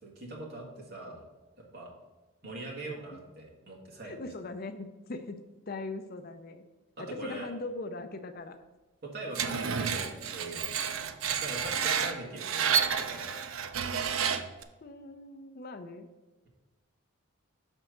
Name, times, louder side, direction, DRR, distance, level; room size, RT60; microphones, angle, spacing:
voice 1, 0.0-1.2 1.6-1.9 2.4-4.3 7.0-7.5 9.0-10.9 11.4-13.5, right 1 dB, 45° right, -2 dB, 1.6 m, -42 dB
voice 2, 4.0-6.6 7.0-8.6 14.8-16.1, left 2 dB, 40° left, 8 dB, 0.5 m, -40 dB
Screech, 9.4-14.6, right 7 dB, 65° right, 0.5 m, -30 dB
6.1 x 4.4 x 6.3 m, 1.1 s
head